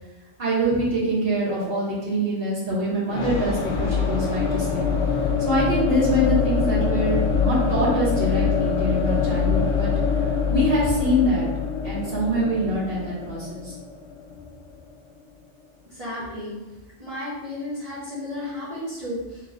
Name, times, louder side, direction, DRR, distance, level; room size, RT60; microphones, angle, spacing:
voice 1, 0.4-4.9 5.4-9.9 10.5-11.5 11.8-13.7, equal, 50° right, -8 dB, 1.7 m, -24 dB
sound 1, 3.1-14.9, left 5 dB, 80° left, 1.0 m, -24 dB
voice 2, 15.9-16.6 17.0-19.4, left 1 dB, 35° right, -10 dB, 1.2 m, -33 dB
3.7 x 3.0 x 3.9 m, 1.1 s
omnidirectional pair, 1.2 m